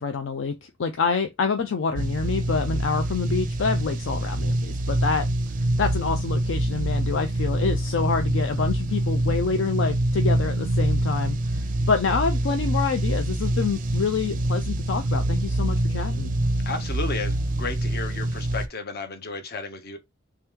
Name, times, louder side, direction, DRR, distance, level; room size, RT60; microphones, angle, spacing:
voice 1, 0.0-5.3 5.8-16.3, left 5 dB, 70° left, 0.4 m, -27 dB
sound 1, 2.0-18.7, right 1 dB, 45° right, 0.4 m, -25 dB
voice 2, 16.7-20.0, left 3 dB, 50° left, 0.8 m, -33 dB
3.3 x 3.0 x 3.5 m
head